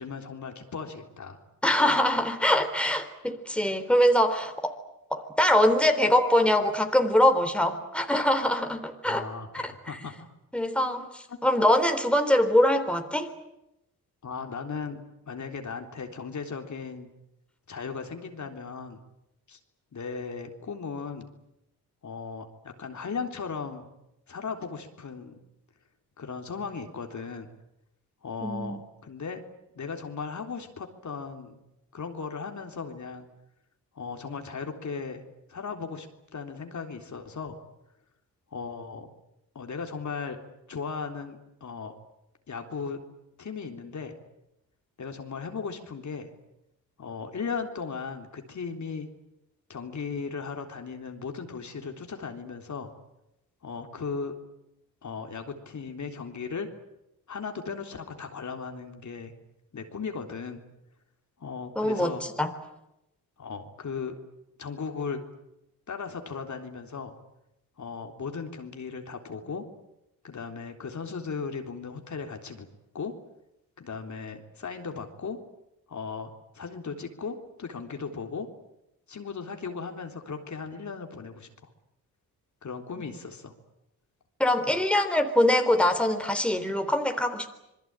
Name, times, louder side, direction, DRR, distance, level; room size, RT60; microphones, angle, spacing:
voice 1, 0.0-1.4 9.0-10.3 11.3-11.4 14.2-17.1 17.7-19.0 19.5-19.6 19.9-21.3 22.0-23.9 24.3-25.3 26.2-27.5 28.2-29.4 29.7-31.6 31.9-33.3 34.0-35.2 35.5-36.1 36.3-37.6 38.5-39.1 39.6-40.4 40.7-42.0 42.5-43.0 43.4-44.1 45.0-46.3 47.0-49.1 49.7-52.9 53.6-54.4 55.0-56.7 57.3-59.3 59.7-60.6 61.4-62.2 63.4-64.2 64.6-65.2 65.9-67.1 67.8-69.6 70.2-72.7 72.9-73.1 73.8-75.4 75.9-78.5 79.1-81.5 82.6-83.5 84.7-84.9, left 5 dB, 50° left, 4 dB, 3.6 m, -37 dB
voice 2, 1.6-4.8 5.1-9.3 9.6-9.7 10.5-13.3 28.4-28.8 61.8-62.5 84.4-87.5, left 1 dB, 5° left, 7 dB, 3.6 m, -23 dB
27.0 x 21.5 x 9.0 m, 0.87 s
cardioid pair, 70°, 37 cm